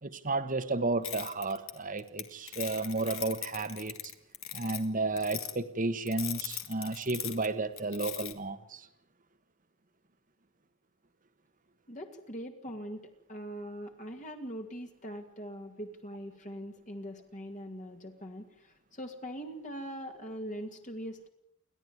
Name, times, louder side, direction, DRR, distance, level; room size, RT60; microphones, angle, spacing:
voice 1, 0.0-3.9 4.5-8.9, right 3 dB, 40° right, 11 dB, 1.4 m, -32 dB
sound 1, 1.0-2.2 2.5-4.8 5.2-5.5 6.1-7.5 7.8-8.3, left 12 dB, 60° left, 2.1 m, -39 dB
voice 2, 11.9-21.3, equal, 35° left, 3 dB, 2.3 m, -42 dB
29.5 x 11.5 x 9.5 m, 0.78 s
head